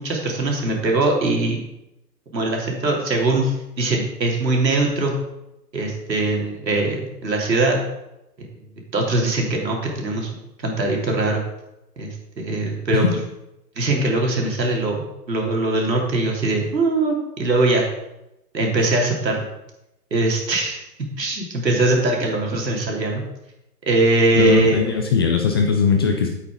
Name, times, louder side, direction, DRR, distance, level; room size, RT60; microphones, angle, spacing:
voice 1, 0.0-1.6 2.3-5.1 5.7-7.8 8.4-8.5 8.9-10.3 10.6-11.4 12.0-13.0 13.7-17.9 18.5-19.5 20.1-20.8 21.2-23.2 23.9-24.8, right 2 dB, 80° right, 0 dB, 3.3 m, -21 dB
voice 2, 24.3-26.3, left 5 dB, 15° left, 2 dB, 0.4 m, -19 dB
8.8 x 8.3 x 5.0 m, 0.89 s
hypercardioid pair, 125°, 50 cm